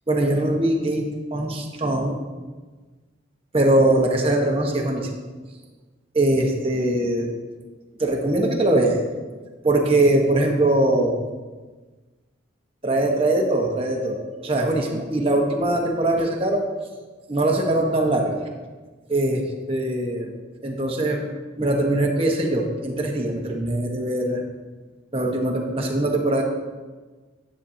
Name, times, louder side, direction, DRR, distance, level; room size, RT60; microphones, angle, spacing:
voice 1, 0.1-1.1 1.3-2.2 3.5-5.1 6.1-7.3 8.0-9.1 9.6-11.2 12.8-16.6 17.3-18.4 19.1-21.2 21.6-24.4 25.1-26.4, right 1 dB, 30° right, 1 dB, 1.2 m, -22 dB
10.5 x 8.6 x 2.8 m, 1.3 s
head